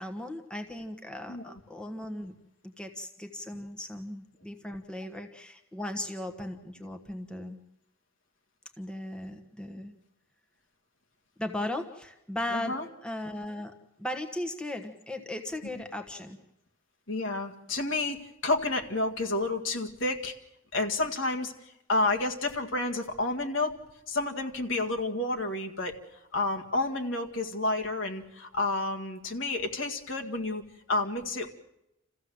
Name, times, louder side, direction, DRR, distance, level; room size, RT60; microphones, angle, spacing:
voice 1, 0.0-2.3 2.8-7.6 8.8-9.9 11.4-13.7 14.0-16.4, left 1 dB, 5° left, 4 dB, 1.3 m, -37 dB
voice 2, 12.5-12.9 17.1-20.3 20.7-21.5 21.9-23.8 24.1-25.9 26.3-30.6 30.9-31.5, left 2 dB, 65° left, 3 dB, 2.0 m, -30 dB
28.0 x 15.0 x 7.8 m, 0.89 s
head